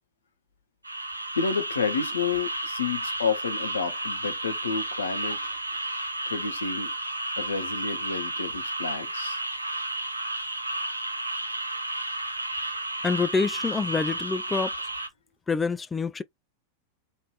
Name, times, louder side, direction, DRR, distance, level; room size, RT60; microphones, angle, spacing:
sound 1, 0.8-15.1, right 2 dB, 85° right, 0.5 m, -32 dB
voice 1, 1.4-5.5 6.3-6.9 7.4-9.4, left 5 dB, 70° left, 0.8 m, -30 dB
voice 2, 13.0-14.7 15.5-16.2, left 4 dB, 15° left, 0.3 m, -26 dB
3.2 x 2.5 x 2.3 m
figure-of-eight pair, 90°, 0 cm